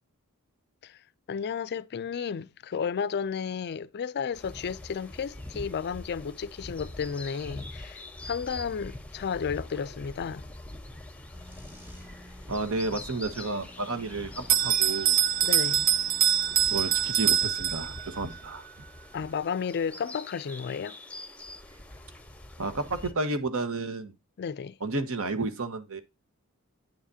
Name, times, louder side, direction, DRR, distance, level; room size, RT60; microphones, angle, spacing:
voice 1, 1.3-10.5 15.4-15.9 19.1-21.0 24.4-24.8, left 6 dB, 50° left, 0.4 m, -33 dB
sound 1, 4.3-23.1, left 1 dB, 5° left, 0.8 m, -44 dB
sound 2, 11.3-17.3 20.9-21.0 21.3-21.4 23.3-23.5 23.8-23.9, left 1 dB, 10° right, 2.0 m, -52 dB
voice 2, 12.5-15.1 16.7-18.7 22.6-24.1 24.8-26.0, right 3 dB, 65° right, 1.3 m, -31 dB
Bell, 14.5-18.2, right 10 dB, 40° right, 0.4 m, -24 dB
9.3 x 7.2 x 2.7 m
head